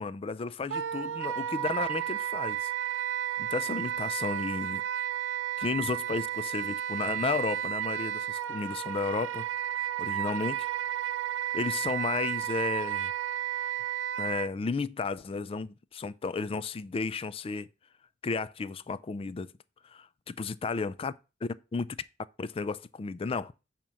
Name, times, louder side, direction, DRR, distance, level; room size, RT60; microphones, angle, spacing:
voice 1, 0.0-2.7 3.4-4.8 5.6-9.4 10.0-10.7 11.5-13.1 14.2-17.7 18.2-19.5 19.8-21.1 21.4-22.0 22.4-23.5, left 4 dB, 30° left, 0.3 m, -33 dB
Wind instrument woodwind instrument, 0.7-14.5, right 11 dB, 80° right, 0.4 m, -32 dB
8.9 x 3.0 x 6.2 m
head